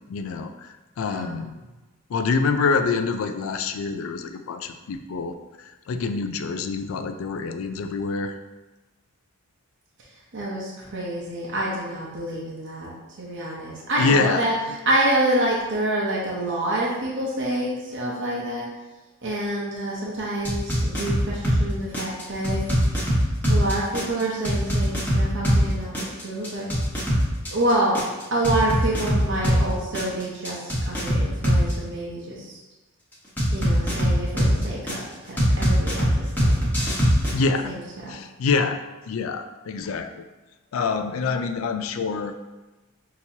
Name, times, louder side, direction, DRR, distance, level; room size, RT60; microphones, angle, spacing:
voice 1, 0.0-1.6 2.1-8.4 14.0-14.5 37.3-37.7 38.1-40.2 40.7-42.4, left 4 dB, 75° left, 8 dB, 0.3 m, -26 dB
voice 2, 1.1-1.4 10.3-12.9 13.2-14.5 14.8-18.7 19.2-22.6 23.5-26.6 27.5-28.0 28.3-32.6 33.5-36.1 36.4-36.7 37.6-37.8 38.1-38.2, right 1 dB, 60° right, -4 dB, 0.8 m, -27 dB
sound 1, 20.4-21.6 21.9-25.6 25.9-29.6 29.9-31.7 33.4-34.9 35.4-37.3, equal, 10° left, 1.1 m, -21 dB
5.9 x 2.9 x 2.7 m, 1.1 s
head